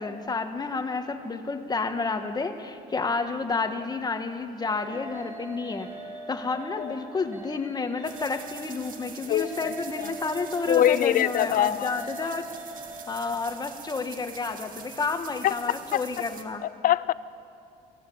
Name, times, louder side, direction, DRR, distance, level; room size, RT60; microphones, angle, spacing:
voice 1, 0.0-5.9 6.3-12.6 13.1-16.6, left 4 dB, 25° left, 7 dB, 1.6 m, -30 dB
sound 1, 4.6-13.6, right 2 dB, 15° right, 4.2 m, -42 dB
sound 2, 8.0-16.4, right 7 dB, 55° right, 2.0 m, -45 dB
voice 2, 9.3-9.7 10.0-10.1 10.7-11.9 15.4-15.5 15.9-16.0 16.6-17.1, left 12 dB, 55° left, 18 dB, 0.6 m, -23 dB
22.5 x 16.0 x 8.7 m, 2.6 s
cardioid pair, 110°, 17 cm